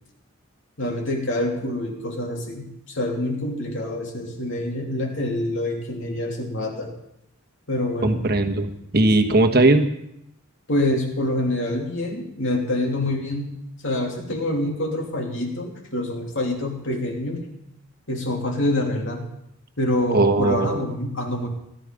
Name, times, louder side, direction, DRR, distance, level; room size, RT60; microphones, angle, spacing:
voice 1, 0.8-6.9 7.7-8.2 10.7-13.5 13.8-17.5 18.1-19.3 19.8-21.5, left 1 dB, 60° left, 1 dB, 3.0 m, -26 dB
voice 2, 8.0-9.9 20.1-20.8, right 2 dB, 45° right, 6 dB, 1.2 m, -19 dB
17.0 x 11.5 x 5.2 m, 0.79 s
head